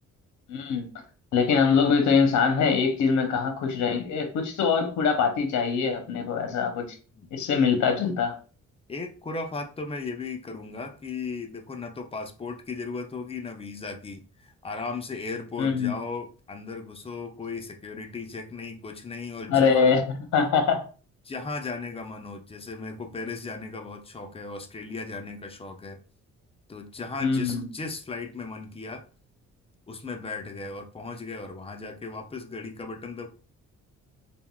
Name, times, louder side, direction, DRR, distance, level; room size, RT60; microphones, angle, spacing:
voice 1, 0.5-0.9 1.3-7.0 7.3-8.4 15.6-15.9 19.5-20.0 20.3-20.9 27.2-27.6, left 5 dB, 70° left, 0.7 m, -23 dB
voice 2, 8.9-20.0 21.2-26.0 26.7-29.0 29.9-33.3, left 4 dB, 20° left, 0.5 m, -36 dB
3.5 x 2.2 x 2.3 m
cardioid pair, 90°, 30 cm